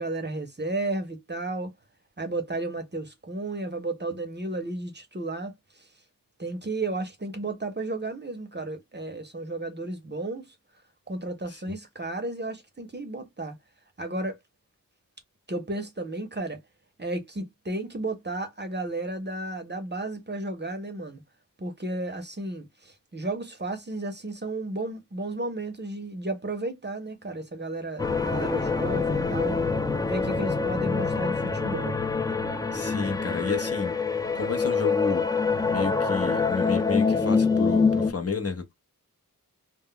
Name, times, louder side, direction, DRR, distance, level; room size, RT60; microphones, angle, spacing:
voice 1, 0.0-1.7 2.2-5.8 6.4-10.5 11.1-13.6 14.0-14.4 15.5-16.6 17.0-21.2 21.6-29.6 30.1-32.0, right 2 dB, 30° right, 0.6 m, -33 dB
sound 1, 28.0-38.1, left 4 dB, 10° left, 0.3 m, -25 dB
voice 2, 32.7-33.9 34.3-35.3 35.7-38.7, left 4 dB, 45° left, 0.6 m, -31 dB
2.1 x 2.0 x 3.7 m
wide cardioid pair, 55°, 35 cm